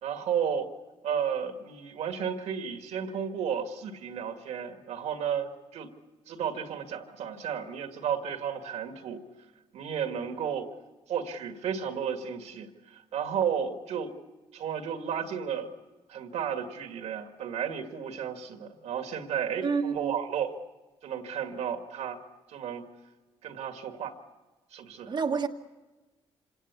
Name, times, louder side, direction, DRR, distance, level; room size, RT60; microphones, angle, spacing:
voice 1, 0.0-0.7 1.0-5.9 6.3-9.2 9.7-10.7 11.1-14.1 14.5-15.7 16.1-20.5 21.0-22.2 22.5-22.9 23.4-24.1 24.7-25.1, right 8 dB, 75° right, 6 dB, 2.0 m, -33 dB
voice 2, 19.6-20.2 25.1-25.5, right 5 dB, 40° right, 2 dB, 1.4 m, -28 dB
26.5 x 18.0 x 8.4 m, 1.2 s
supercardioid pair, 65°, 11 cm